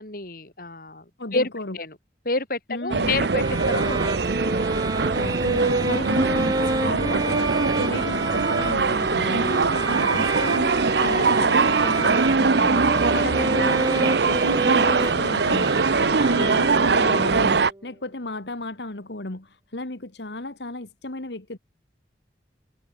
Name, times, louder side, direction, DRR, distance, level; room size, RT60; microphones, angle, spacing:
voice 1, 0.0-1.5 1.7-1.9 2.2-4.4, left 3 dB, 55° left, 4.9 m, -29 dB
voice 2, 1.2-1.8 2.7-3.2 5.1-21.6, left 2 dB, 75° left, 2.0 m, -34 dB
sound 1, 2.9-17.7, right 4 dB, 75° right, 0.8 m, -22 dB
Bowed string instrument, 3.3-17.8, right 2 dB, 20° right, 0.9 m, -29 dB
head